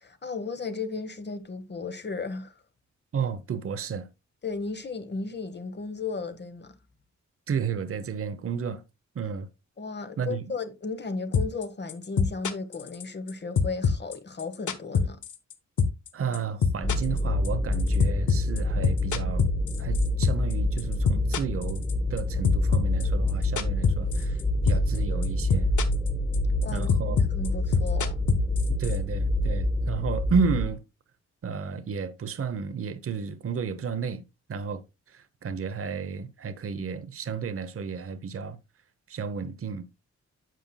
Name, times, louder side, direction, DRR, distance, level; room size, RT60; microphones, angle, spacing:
voice 1, 0.0-2.5 4.4-6.8 9.8-15.2 26.6-28.2, left 4 dB, 35° left, 1.1 m, -35 dB
voice 2, 3.1-4.1 7.5-8.8 9.1-9.5 10.2-10.6 16.1-19.5 19.8-25.7 26.7-27.5 28.7-30.8 31.4-34.2 34.5-38.6 39.1-39.9, right 6 dB, 50° right, 0.8 m, -32 dB
sound 1, 11.3-11.6 11.9-13.3 13.6-15.5 15.8-16.1 16.3-20.5 20.8-22.2 22.4-24.4 24.7-25.0 25.2-26.1 26.3-29.0, left 6 dB, 80° left, 1.1 m, -24 dB
sound 2, 16.8-30.7, left 1 dB, 10° left, 0.8 m, -27 dB
9.1 x 7.6 x 2.2 m
wide cardioid pair, 130°, 30 cm